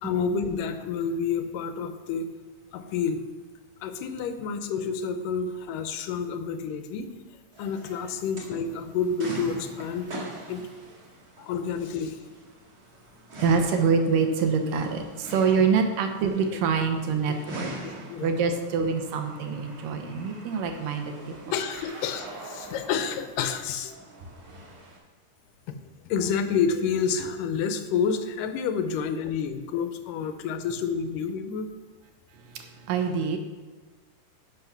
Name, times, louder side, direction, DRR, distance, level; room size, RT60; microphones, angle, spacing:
voice 1, 0.0-2.3 2.7-3.2 3.8-7.1 7.6-10.1 10.5-10.7 11.4-12.2 15.6-15.7 17.3-17.4 17.8-18.3 21.5-24.0 25.7-25.8 26.1-31.7, left 6 dB, 80° left, 8 dB, 2.3 m, -29 dB
sound 1, 7.5-25.0, right 1 dB, 35° right, 1.9 m, -43 dB
voice 2, 13.4-17.7 18.2-21.1 32.5-33.4, right 5 dB, 80° right, 5 dB, 2.7 m, -25 dB
10.5 x 6.3 x 5.9 m, 1.3 s
omnidirectional pair, 3.8 m